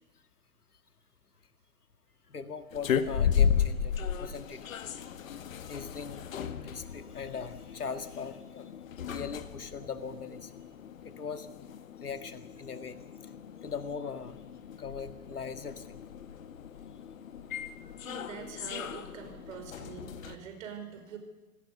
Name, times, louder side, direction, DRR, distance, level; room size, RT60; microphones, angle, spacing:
voice 1, 2.3-4.7 5.6-6.3 6.6-8.7 9.1-10.5 11.0-11.5 12.0-13.0 13.6-14.4 14.8-16.0 18.3-18.5, left 5 dB, 80° left, 9 dB, 1.9 m, -40 dB
sound 1, 2.7-20.4, left 8 dB, 60° left, 1.8 m, -35 dB
voice 2, 18.0-21.2, right 7 dB, 55° right, 6 dB, 5.6 m, -44 dB
27.0 x 17.5 x 6.9 m, 1.1 s
figure-of-eight pair, 100°, 45 cm